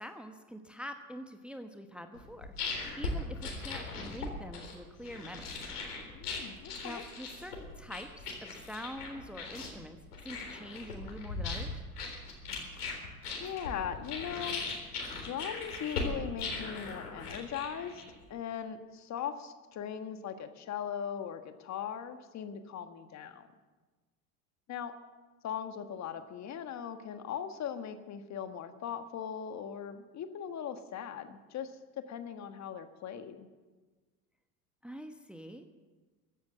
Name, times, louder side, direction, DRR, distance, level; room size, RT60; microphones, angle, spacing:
voice 1, 0.0-2.5 3.0-5.6 6.8-8.1 8.4-10.0 10.2-11.8 34.8-35.7, equal, ahead, 6 dB, 1.1 m, -45 dB
sound 1, 2.1-18.3, left 3 dB, 80° left, 3.9 m, -39 dB
voice 2, 6.1-7.0 13.4-14.6 15.2-18.0 18.3-23.5 24.7-24.9 25.4-33.5, left 8 dB, 35° left, 9 dB, 1.5 m, -39 dB
15.0 x 12.0 x 7.6 m, 1.3 s
hypercardioid pair, 80°, 45 cm